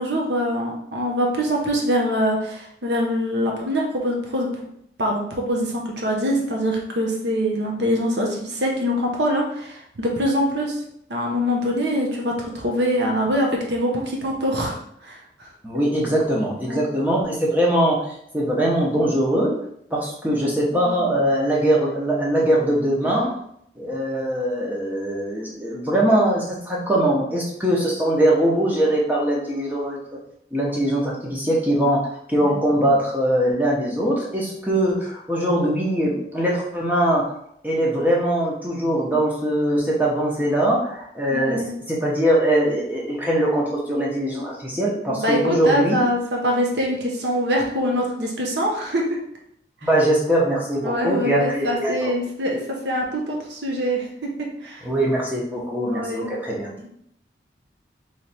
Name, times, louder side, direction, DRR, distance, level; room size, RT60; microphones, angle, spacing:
voice 1, 0.0-4.6 5.0-10.8 11.1-15.5 16.6-16.9 20.7-21.0 32.4-32.6 41.3-41.7 45.1-49.2 50.8-54.9 55.9-56.3, equal, 80° right, 0 dB, 0.9 m, -24 dB
voice 2, 15.6-19.5 19.9-23.4 23.8-30.0 30.5-37.3 37.6-41.6 41.9-46.0 49.8-52.1 54.8-56.7, right 1 dB, 10° right, -4 dB, 0.9 m, -21 dB
3.2 x 3.2 x 4.2 m, 0.71 s
head